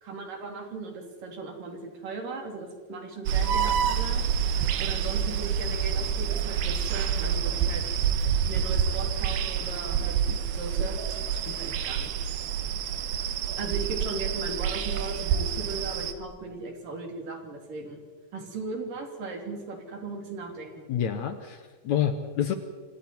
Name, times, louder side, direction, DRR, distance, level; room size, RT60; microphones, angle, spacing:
voice 1, 0.0-8.1 8.4-12.1 13.6-18.0 18.3-20.9, right 3 dB, 65° right, 2 dB, 5.0 m, -38 dB
sound 1, 3.3-16.1, right 7 dB, 90° right, 3.1 m, -27 dB
voice 2, 20.9-22.5, left 9 dB, 65° left, 8 dB, 2.1 m, -28 dB
28.0 x 26.5 x 4.6 m, 1.4 s
omnidirectional pair, 4.2 m